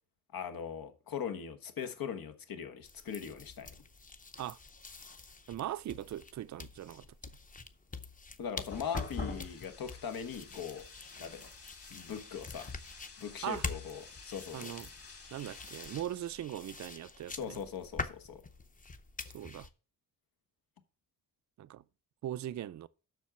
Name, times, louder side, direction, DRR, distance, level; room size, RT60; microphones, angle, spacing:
voice 1, 0.3-3.7 8.4-10.9 11.2-11.5 11.9-12.7 13.2-14.7 17.3-18.4, left 7 dB, 85° left, 1.4 m, -40 dB
sound 1, 2.8-19.7, left 4 dB, 25° left, 0.6 m, -46 dB
voice 2, 5.5-7.3 13.4-13.6 14.5-14.9 15.3-17.6 19.3-19.7 21.6-21.8 22.2-22.9, right 12 dB, 55° right, 0.4 m, -40 dB
sound 2, 8.7-16.0, left 3 dB, 40° left, 2.4 m, -47 dB
7.4 x 6.3 x 5.9 m
wide cardioid pair, 165°, 34 cm